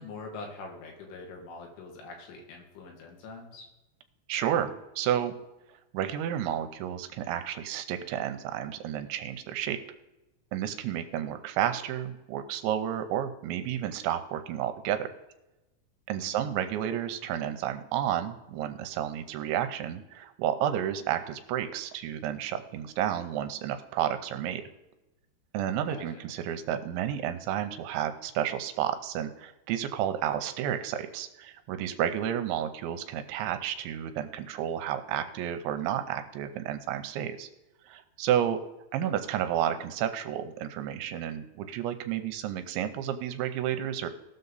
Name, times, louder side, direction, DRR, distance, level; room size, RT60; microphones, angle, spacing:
voice 1, 0.0-3.7 16.2-16.5 25.9-26.2 39.0-39.2, left 3 dB, 85° left, 1 dB, 4.6 m, -44 dB
voice 2, 4.3-5.3 5.9-9.8 10.5-15.1 16.1-24.6 25.5-37.5 37.9-38.6 38.9-44.1, right 10 dB, 80° right, 8 dB, 2.9 m, -31 dB
18.5 x 6.6 x 4.0 m, 0.98 s
omnidirectional pair, 5.5 m